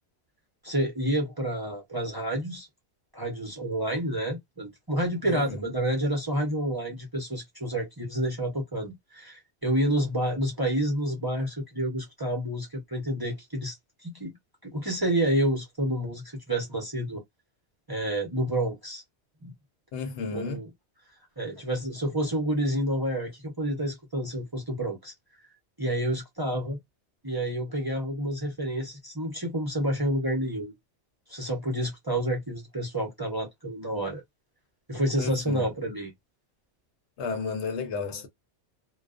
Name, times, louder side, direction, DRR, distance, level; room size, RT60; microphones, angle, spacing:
voice 1, 0.6-2.7 3.1-13.8 14.0-14.4 14.6-17.2 17.9-19.0 19.4-19.5 20.3-20.7 21.4-25.1 25.8-26.8 27.2-30.7 31.3-34.2 34.9-36.1, right 1 dB, 25° right, 0.6 m, -29 dB
voice 2, 5.2-5.7 19.9-20.6 35.2-35.7 37.2-38.3, left 4 dB, 75° left, 1.0 m, -33 dB
2.3 x 2.2 x 2.4 m
omnidirectional pair, 1.2 m